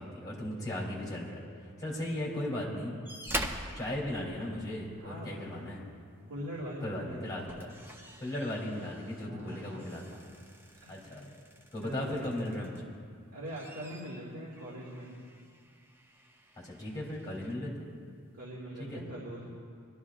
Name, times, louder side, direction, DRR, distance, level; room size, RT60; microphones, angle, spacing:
voice 1, 0.0-1.4 1.8-2.9 3.7-5.8 6.8-7.7 8.2-10.0 10.9-11.2 11.7-12.9 16.6-17.9 18.8-19.0, left 1 dB, 20° left, -4 dB, 3.1 m, -36 dB
sound 1, 3.0-5.1 6.6-6.8 7.2-13.0 13.4-17.6 18.4-18.5, right 1 dB, 10° right, 0.6 m, -44 dB
voice 2, 5.0-5.5 6.3-7.4 9.2-9.8 10.1-10.2 10.8-11.3 11.8-12.3 13.3-15.1 17.3-17.6 18.3-19.4, equal, 70° right, -6 dB, 2.1 m, -42 dB
23.0 x 12.5 x 2.5 m, 2.2 s
head